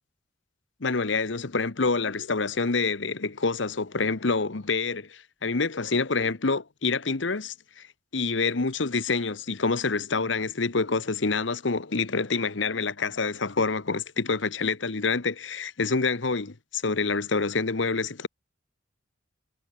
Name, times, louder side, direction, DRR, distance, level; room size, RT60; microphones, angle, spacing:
voice 1, 0.8-7.5 8.1-18.3, left 4 dB, 70° left, 1.1 m, -27 dB
head